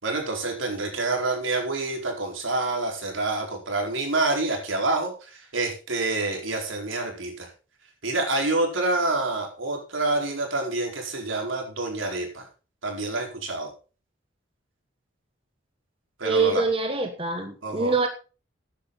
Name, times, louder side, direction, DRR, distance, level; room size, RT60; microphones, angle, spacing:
voice 1, 0.0-7.5 8.0-12.5 12.8-13.7 16.2-16.6 17.6-17.9, right 2 dB, 80° right, 1 dB, 4.6 m, -27 dB
voice 2, 16.2-18.1, right 3 dB, 25° right, 5 dB, 1.3 m, -24 dB
14.5 x 10.0 x 4.1 m, 0.34 s
head